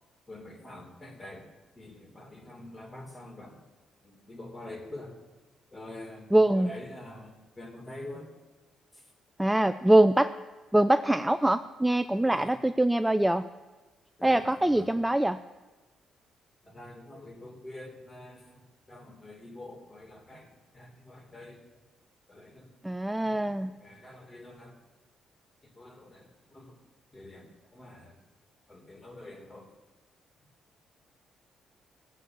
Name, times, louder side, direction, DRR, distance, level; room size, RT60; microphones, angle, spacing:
voice 1, 0.3-1.5 1.7-3.6 4.0-5.1 5.7-8.3 8.9-9.0 12.2-12.5 14.2-14.9 16.6-21.6 22.3-22.7 23.2-23.5 23.8-24.8 25.8-26.8 27.1-28.2 28.7-29.7, left 1 dB, 25° left, 2 dB, 3.3 m, -46 dB
voice 2, 6.3-6.7 9.4-10.4 10.7-13.4 14.2-15.4 22.8-23.7, right 1 dB, 10° right, 10 dB, 0.4 m, -23 dB
17.0 x 8.2 x 7.3 m, 1.3 s
cardioid pair, 90°, 0 cm